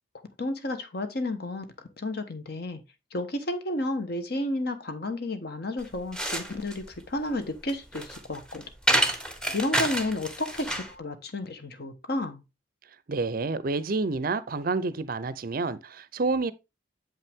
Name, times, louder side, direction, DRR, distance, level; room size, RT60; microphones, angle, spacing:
voice 1, 0.4-1.7 2.0-2.8 3.1-8.6 9.5-12.4, left 1 dB, 55° left, 1.1 m, -32 dB
sound 1, 5.8-11.0, right 1 dB, 5° left, 0.9 m, -29 dB
voice 2, 13.1-16.5, right 3 dB, 45° right, 0.5 m, -29 dB
7.5 x 5.5 x 3.6 m
head